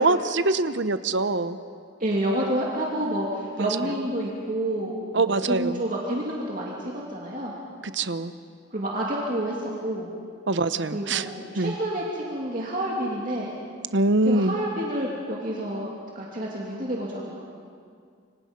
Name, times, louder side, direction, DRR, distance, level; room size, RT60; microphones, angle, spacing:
voice 1, 0.0-1.6 3.6-3.7 5.1-5.8 7.9-8.3 10.5-11.2 11.6-11.7 13.9-14.5, right 2 dB, 60° right, 12 dB, 0.8 m, -23 dB
voice 2, 2.0-7.5 8.7-10.1 10.9-13.5 14.2-17.4, right 1 dB, 40° right, -3 dB, 2.6 m, -29 dB
29.0 x 25.0 x 5.3 m, 2.2 s
head